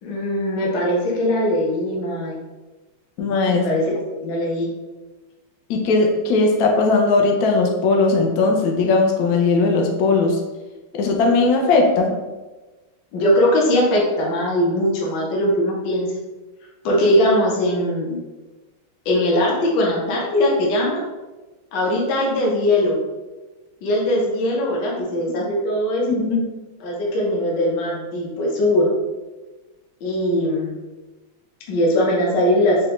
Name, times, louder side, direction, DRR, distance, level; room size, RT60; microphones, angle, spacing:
voice 1, 0.0-2.3 3.5-4.7 13.1-16.1 16.8-18.2 19.1-21.0 21.7-23.0 23.8-26.0 26.8-28.9 30.0-30.7 31.7-32.8, left 1 dB, 65° left, -3 dB, 1.3 m, -20 dB
voice 2, 3.2-3.7 5.7-10.4 10.9-12.1 24.9-25.0 26.0-26.4, left 3 dB, 90° left, 1 dB, 0.8 m, -18 dB
4.8 x 2.2 x 3.0 m, 1.2 s
omnidirectional pair, 2.3 m